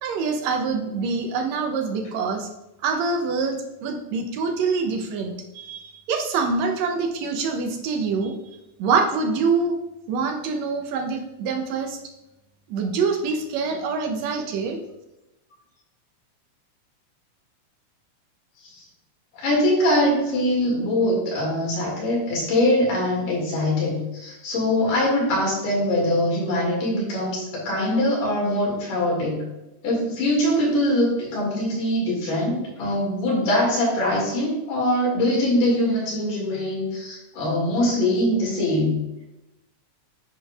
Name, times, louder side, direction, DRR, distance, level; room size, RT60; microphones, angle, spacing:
voice 1, 0.0-2.5 2.8-5.3 5.6-8.4 8.8-9.8 10.1-12.0 12.7-14.8, right 4 dB, 70° right, 3 dB, 1.8 m, -25 dB
voice 2, 19.3-29.4 29.8-38.9, left 1 dB, 90° left, -4 dB, 3.7 m, -22 dB
9.8 x 5.0 x 2.4 m, 0.96 s
omnidirectional pair, 3.6 m